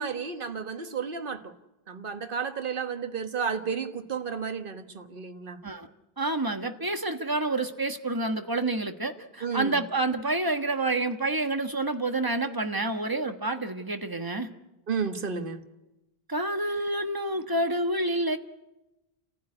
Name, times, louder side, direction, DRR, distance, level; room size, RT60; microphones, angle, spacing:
voice 1, 0.0-1.5 1.9-5.6 9.4-9.8 14.9-15.6, right 6 dB, 60° right, 1.5 m, -32 dB
voice 2, 6.2-14.5 16.3-18.4, right 2 dB, 20° right, 1.3 m, -28 dB
29.5 x 15.0 x 9.8 m
omnidirectional pair, 1.0 m